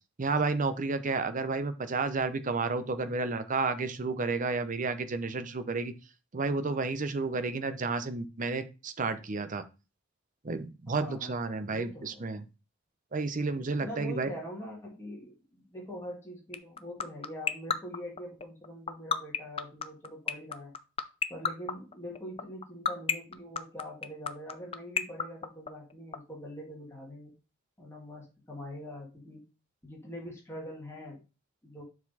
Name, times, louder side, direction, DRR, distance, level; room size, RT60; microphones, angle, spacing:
voice 1, 0.2-5.9 6.3-9.6 10.4-12.4 13.1-14.3, right 3 dB, 40° right, 11 dB, 0.7 m, -31 dB
voice 2, 10.9-12.2 13.8-20.7 21.3-27.3 27.8-29.4 29.8-31.2 31.6-31.8, equal, 15° left, -4 dB, 2.0 m, -43 dB
sound 1, 16.5-26.2, left 7 dB, 30° left, 0.5 m, -28 dB
7.1 x 4.1 x 4.1 m, 0.31 s
head